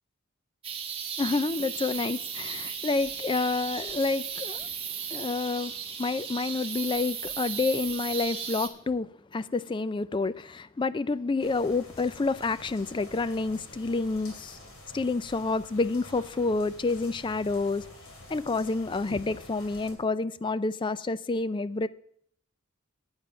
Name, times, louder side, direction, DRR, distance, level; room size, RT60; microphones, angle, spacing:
sound 1, 0.6-8.7, right 7 dB, 25° right, 1.3 m, -36 dB
voice 1, 1.2-4.7 5.1-14.6 14.9-17.9 18.3-21.9, left 3 dB, 25° left, 0.4 m, -29 dB
sound 2, 11.4-19.9, left 1 dB, 75° left, 2.5 m, -48 dB
9.7 x 8.9 x 5.6 m
head